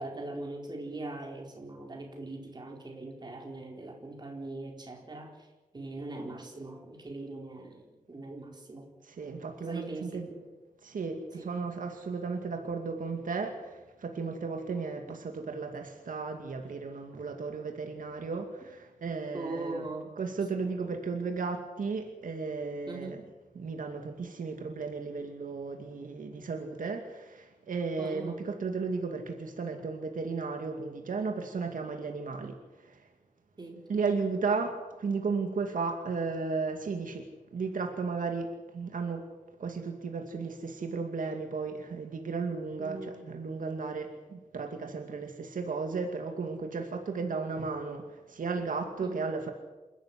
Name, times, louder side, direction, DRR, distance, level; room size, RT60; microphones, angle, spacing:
voice 1, 0.0-5.3 5.7-8.9 9.6-10.4 11.4-11.5 19.3-20.2 22.9-23.2 28.0-28.5 33.6-33.8 42.8-43.2 49.0-49.3, right 2 dB, 30° right, 1 dB, 4.5 m, -41 dB
voice 2, 9.0-10.3 10.8-19.8 20.2-23.2 23.6-33.1 33.9-39.3 39.6-49.5, right 4 dB, 75° right, 4 dB, 2.5 m, -34 dB
27.5 x 13.0 x 9.8 m, 1.1 s
wide cardioid pair, 180°, 14 cm